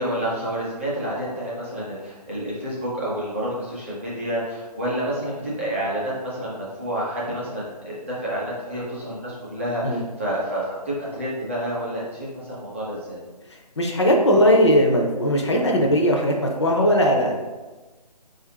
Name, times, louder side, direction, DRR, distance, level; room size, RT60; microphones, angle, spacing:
voice 1, 0.0-13.2, right 1 dB, 20° right, -7 dB, 0.5 m, -29 dB
voice 2, 13.8-17.4, equal, 45° left, 1 dB, 0.4 m, -19 dB
4.1 x 2.4 x 2.7 m, 1.2 s
figure-of-eight pair, 165°, 21 cm